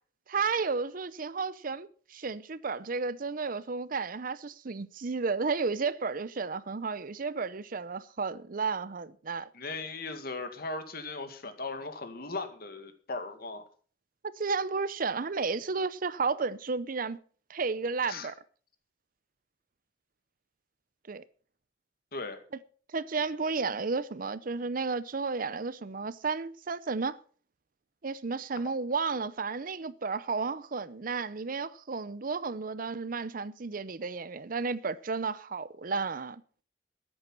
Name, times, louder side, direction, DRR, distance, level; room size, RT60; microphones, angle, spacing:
voice 1, 0.3-9.5 14.2-17.2 17.5-18.3 21.1-21.2 22.9-27.2 28.0-36.4, right 4 dB, 50° right, 0.6 m, -32 dB
voice 2, 9.5-13.6 18.1-18.3 22.1-22.4, left 3 dB, 55° left, 2.1 m, -38 dB
13.5 x 9.8 x 6.0 m
head